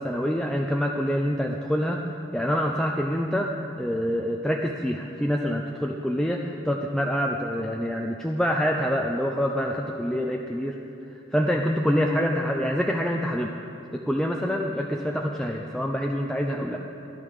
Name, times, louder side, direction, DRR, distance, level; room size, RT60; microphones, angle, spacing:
voice 1, 0.0-2.1 2.3-10.8 11.3-13.6 13.9-16.8, equal, 5° left, 0 dB, 0.6 m, -26 dB
15.5 x 11.0 x 6.7 m, 2.9 s
head